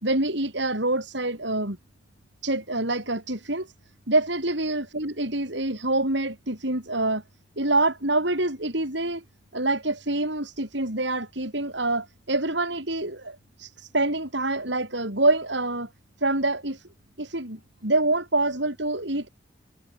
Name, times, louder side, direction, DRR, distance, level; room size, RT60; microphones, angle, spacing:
voice 1, 0.0-1.8 2.4-3.7 4.1-7.2 7.6-9.2 9.5-15.9 16.2-16.9 17.2-19.3, right 2 dB, 65° right, 6.3 m, -26 dB
head